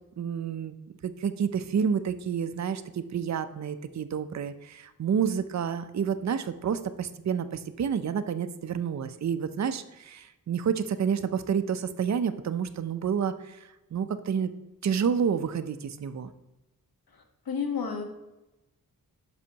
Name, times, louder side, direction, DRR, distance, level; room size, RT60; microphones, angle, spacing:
voice 1, 0.2-0.7 1.0-13.6 13.9-14.5 14.8-16.3, right 7 dB, 50° right, 10 dB, 0.5 m, -29 dB
voice 2, 17.1-18.0, left 6 dB, 80° left, 3 dB, 1.3 m, -32 dB
9.8 x 6.1 x 2.9 m, 0.99 s
cardioid pair, 60°, 35 cm